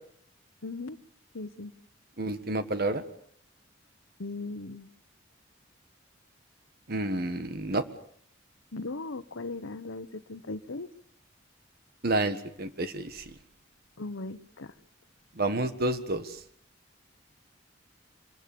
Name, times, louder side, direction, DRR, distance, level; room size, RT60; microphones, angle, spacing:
voice 1, 0.6-1.0 1.3-1.7 4.2-4.9 8.7-10.9 14.0-14.7, left 3 dB, 85° left, 13 dB, 1.0 m, -38 dB
voice 2, 2.2-3.0 6.9-7.8 12.0-13.2 15.4-16.4, right 2 dB, 50° right, 11 dB, 1.6 m, -29 dB
25.0 x 22.5 x 6.9 m, 0.64 s
head